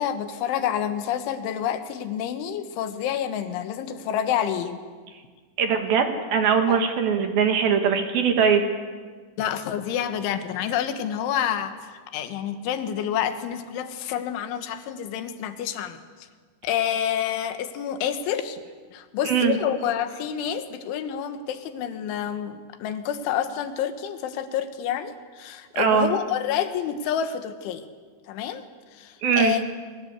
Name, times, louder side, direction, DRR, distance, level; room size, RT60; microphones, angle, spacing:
voice 1, 0.0-4.8 6.7-6.8 9.4-16.0 16.6-18.6 18.9-27.8 28.3-29.6, left 9 dB, 85° left, 9 dB, 3.9 m, -28 dB
voice 2, 5.6-8.6 19.2-19.6 25.8-26.1 29.2-29.6, right 7 dB, 60° right, 6 dB, 3.4 m, -21 dB
29.0 x 23.0 x 8.2 m, 1.5 s
omnidirectional pair, 5.3 m